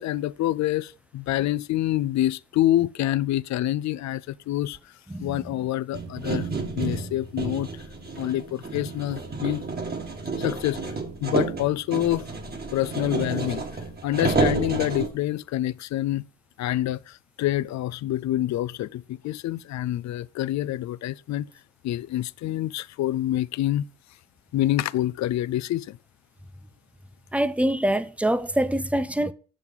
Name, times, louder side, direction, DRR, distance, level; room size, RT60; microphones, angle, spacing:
voice 1, 0.0-4.8 5.2-6.5 6.8-7.8 8.2-9.7 10.4-11.0 11.2-12.3 12.7-13.6 14.0-16.3 16.6-21.5 21.8-23.9 24.5-26.0, left 14 dB, 65° left, 0.5 m, -27 dB
sound 1, 5.9-15.1, right 3 dB, 30° right, 1.7 m, -30 dB
voice 2, 27.3-29.3, right 1 dB, 5° right, 0.6 m, -24 dB
7.1 x 6.3 x 5.3 m
cardioid pair, 90°, 30 cm